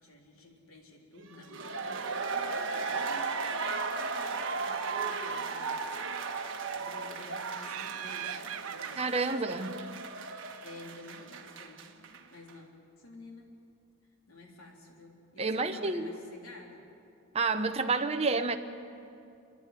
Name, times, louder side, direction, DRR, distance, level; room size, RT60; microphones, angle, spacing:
voice 1, 0.0-3.3 3.6-5.9 6.5-9.5 10.6-12.7 13.0-13.5 14.3-16.9, left 1 dB, 75° left, 0 dB, 3.5 m, -51 dB
sound 1, 1.3-12.2 12.5-12.6, right 4 dB, 55° right, 1.5 m, -36 dB
Laughter, 7.6-10.9, right 10 dB, 80° right, 0.8 m, -43 dB
voice 2, 9.0-9.8 15.4-16.2 17.3-18.6, right 3 dB, 30° right, 6 dB, 0.8 m, -29 dB
30.0 x 11.0 x 9.8 m, 2.7 s
head